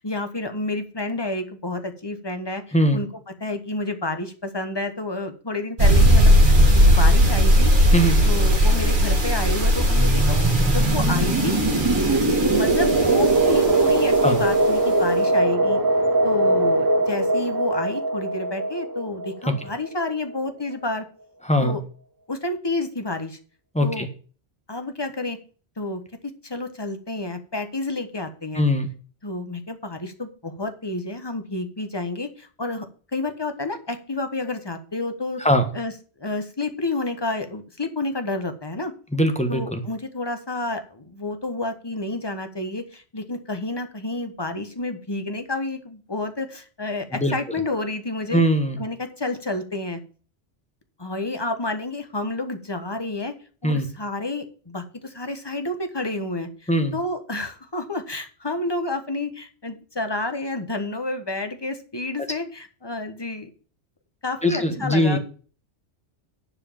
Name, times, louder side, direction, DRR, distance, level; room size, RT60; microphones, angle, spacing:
voice 1, 0.0-3.1 3.4-7.7 8.2-10.4 10.7-11.5 12.5-15.8 16.2-21.0 21.6-21.8 22.3-23.4 23.8-24.1 24.7-25.4 25.8-28.6 29.2-32.9 33.1-35.4 35.7-35.9 36.2-38.9 39.5-48.4 48.8-50.0 51.0-53.3 53.6-63.5 64.2-65.2, left 2 dB, 25° left, 8 dB, 1.3 m, -30 dB
sound 1, 5.8-14.2, equal, 50° right, 1.8 m, -18 dB
voice 2, 7.9-8.2 14.2-14.4 21.5-21.8 23.7-24.1 28.5-28.9 35.4-35.6 39.1-39.8 47.1-47.3 48.3-48.8 53.6-53.9 56.7-56.9 64.4-65.2, equal, 5° left, 6 dB, 1.5 m, -21 dB
sound 2, 9.7-20.2, right 2 dB, 20° right, 0.9 m, -21 dB
10.5 x 4.9 x 7.2 m, 0.40 s
omnidirectional pair, 1.1 m